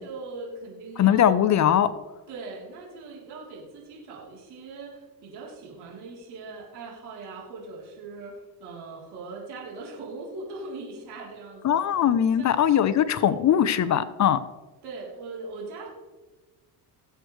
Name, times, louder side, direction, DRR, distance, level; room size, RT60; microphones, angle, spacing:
voice 1, 0.0-1.3 2.3-11.8 12.4-12.6 14.8-15.9, right 3 dB, 80° right, -3 dB, 3.6 m, -40 dB
voice 2, 1.0-1.9 11.6-14.4, left 9 dB, 45° left, 13 dB, 0.7 m, -21 dB
19.5 x 8.0 x 3.3 m, 1.2 s
cardioid pair, 100°, 39 cm